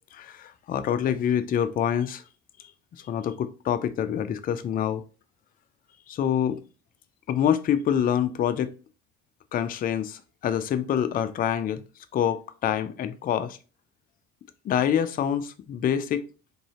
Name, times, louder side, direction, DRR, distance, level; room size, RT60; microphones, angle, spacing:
voice 1, 0.1-2.2 3.0-5.0 6.1-6.6 7.3-8.7 9.5-11.8 12.1-13.6 14.6-16.2, left 9 dB, 25° left, 0.4 m, -26 dB
3.8 x 3.0 x 2.9 m
hypercardioid pair, 65°, 39 cm